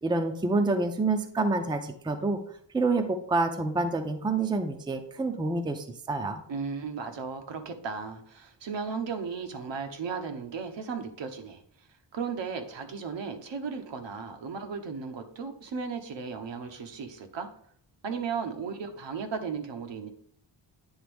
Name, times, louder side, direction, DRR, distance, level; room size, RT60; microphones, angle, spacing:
voice 1, 0.0-2.4 2.7-6.4, right 3 dB, 10° right, 7 dB, 0.4 m, -27 dB
voice 2, 6.5-11.6 12.1-17.5 18.0-20.1, right 5 dB, 80° right, 5 dB, 1.0 m, -35 dB
9.4 x 3.5 x 3.4 m, 0.65 s
wide cardioid pair, 155°, 43 cm